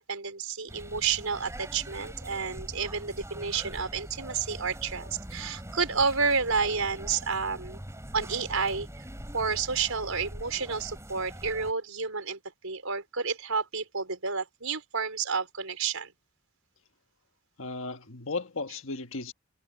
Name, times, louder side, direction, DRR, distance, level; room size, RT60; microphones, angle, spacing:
voice 1, 0.1-7.8 8.1-8.9 9.3-16.1, right 5 dB, 85° right, 4.8 m, -30 dB
sound 1, 0.7-11.7, right 1 dB, 15° right, 4.7 m, -43 dB
voice 2, 17.6-19.3, left 3 dB, 70° left, 1.6 m, -35 dB
head